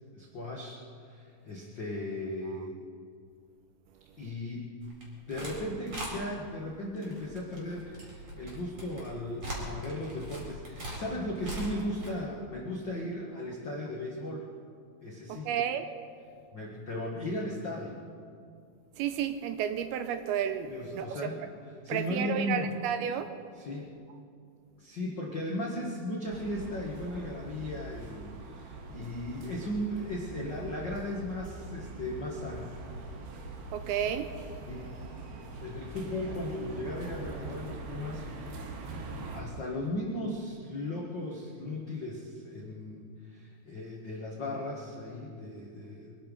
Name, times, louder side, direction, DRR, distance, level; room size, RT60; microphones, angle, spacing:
voice 1, 0.1-2.7 4.2-4.7 5.3-14.5 15.0-15.5 16.5-18.0 20.7-22.7 23.5-23.9 24.8-32.7 34.6-34.9 35.6-38.2 39.3-46.1, left 1 dB, 80° left, -2 dB, 1.0 m, -36 dB
sound 1, 4.8-5.6 5.9-6.1 7.0-12.1, right 1 dB, 35° right, 5.1 m, -41 dB
voice 2, 15.3-15.9 19.0-21.2 21.9-23.3 33.7-34.3, right 9 dB, 80° right, 9 dB, 2.4 m, -32 dB
sound 2, 26.3-39.4, right 3 dB, 65° right, 3.3 m, -43 dB
23.5 x 11.5 x 5.3 m, 2.3 s
omnidirectional pair, 4.9 m